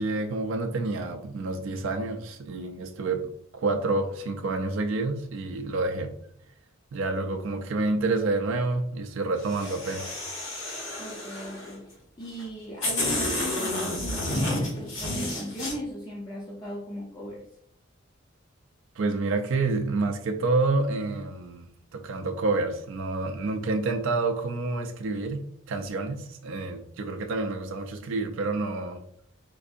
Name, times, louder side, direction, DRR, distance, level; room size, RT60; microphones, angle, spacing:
voice 1, 0.0-6.1 6.9-10.2 19.0-29.0, right 3 dB, 65° right, 0.3 m, -28 dB
sound 1, 9.4-11.7 12.4-12.5 12.8-15.7, left 1 dB, 70° left, 1.2 m, -30 dB
voice 2, 11.0-17.5, equal, 20° left, 0.5 m, -38 dB
4.5 x 2.5 x 2.5 m
head